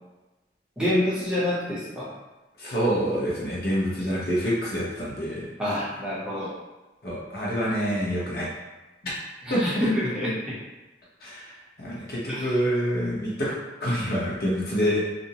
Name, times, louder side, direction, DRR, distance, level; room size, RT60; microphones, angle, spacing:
voice 1, 0.8-2.1 5.6-6.5 9.4-10.6 12.3-12.6, left 1 dB, 5° right, -9 dB, 0.6 m, -27 dB
voice 2, 2.6-5.5 7.0-8.5 9.5-9.6 11.2-13.5 13.8-15.0, equal, 60° left, -7 dB, 0.8 m, -27 dB
2.5 x 2.0 x 2.8 m, 1.1 s
head